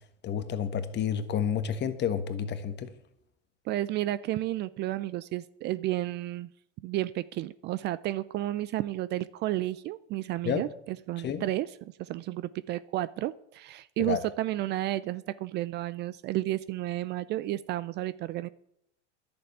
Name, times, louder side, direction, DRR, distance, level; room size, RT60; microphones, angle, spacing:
voice 1, 0.2-2.9 10.4-10.6 11.2-11.4 14.0-14.2, left 8 dB, 30° left, 1.5 m, -30 dB
voice 2, 3.7-6.5 6.8-18.5, right 15 dB, 30° right, 0.4 m, -32 dB
11.0 x 7.0 x 9.5 m
hypercardioid pair, 115°, 35 cm